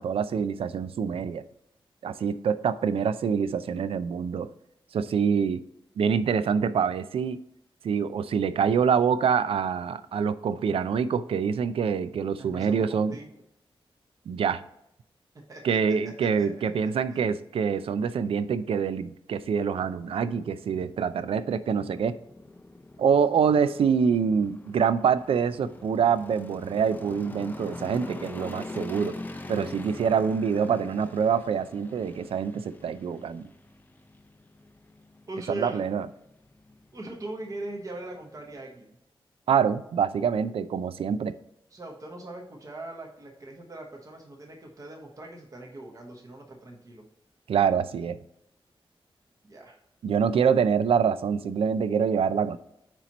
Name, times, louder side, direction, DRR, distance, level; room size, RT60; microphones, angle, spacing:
voice 1, 0.0-1.4 2.0-4.5 4.9-5.6 6.0-7.4 7.8-13.2 14.3-14.6 15.6-22.2 23.0-29.2 29.5-33.5 35.5-36.1 39.5-41.3 47.5-48.2 50.0-52.6, right 6 dB, 80° right, 14 dB, 0.4 m, -25 dB
voice 2, 12.4-13.3 15.5-17.4 35.3-35.8 36.9-39.0 41.7-47.0 49.4-49.8, right 2 dB, 35° right, 0 dB, 1.0 m, -41 dB
sound 1, 19.4-38.7, left 2 dB, 20° left, 0.5 m, -45 dB
8.9 x 3.0 x 4.1 m, 0.79 s
wide cardioid pair, 145°, 10 cm